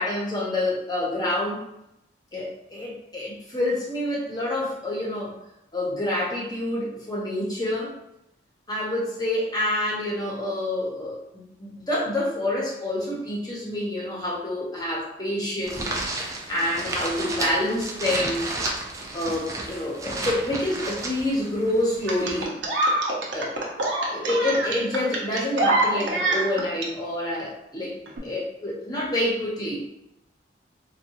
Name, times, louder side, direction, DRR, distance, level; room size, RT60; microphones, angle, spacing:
voice 1, 0.0-1.6 2.3-5.3 5.7-7.9 8.7-18.5 19.1-22.5 23.3-23.6 24.1-28.0 28.2-29.8, left 1 dB, 20° left, -4 dB, 0.8 m, -27 dB
sound 1, 15.6-22.5, right 2 dB, 15° right, 0.4 m, -32 dB
sound 2, 22.1-26.9 28.1-28.2, right 2 dB, 90° right, 0.7 m, -25 dB
3.5 x 2.3 x 2.8 m, 0.83 s
head